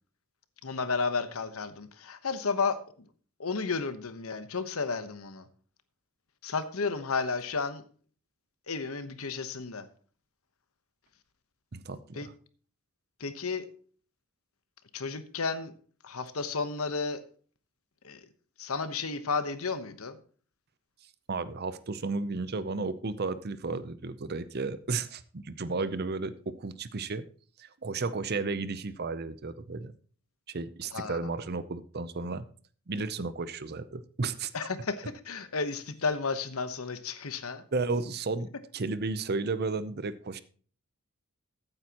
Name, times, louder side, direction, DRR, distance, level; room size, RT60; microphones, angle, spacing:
voice 1, 0.6-3.1 3.4-5.5 6.4-7.8 8.7-9.9 12.2-12.3 13.2-13.7 14.9-15.7 16.0-17.2 18.0-18.2 18.6-20.2 30.9-31.2 34.5-37.6, left 4 dB, 80° left, 11 dB, 1.1 m, -32 dB
voice 2, 11.7-12.3 21.3-27.2 27.6-29.9 30.5-32.5 32.9-34.5 37.7-40.4, right 3 dB, 45° right, 14 dB, 0.6 m, -33 dB
15.0 x 8.8 x 3.0 m, 0.42 s
head